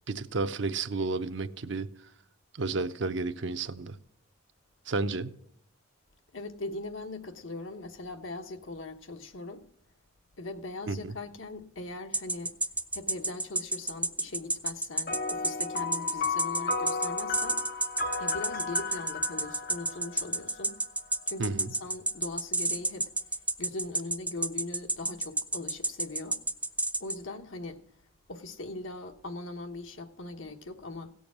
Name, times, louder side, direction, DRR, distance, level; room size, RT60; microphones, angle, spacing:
voice 1, 0.1-1.9 2.5-3.9 4.9-5.4 10.9-11.0 21.4-21.7, right 3 dB, 60° right, 0.7 m, -31 dB
voice 2, 6.3-9.7 10.4-12.6 12.9-17.9 18.2-20.8 21.3-26.4 27.0-27.9 28.3-31.1, left 2 dB, 80° left, 1.2 m, -40 dB
sound 1, 12.1-27.2, right 2 dB, 5° right, 0.4 m, -29 dB
sound 2, 15.1-20.8, left 4 dB, 50° left, 0.7 m, -34 dB
16.5 x 7.0 x 6.1 m
head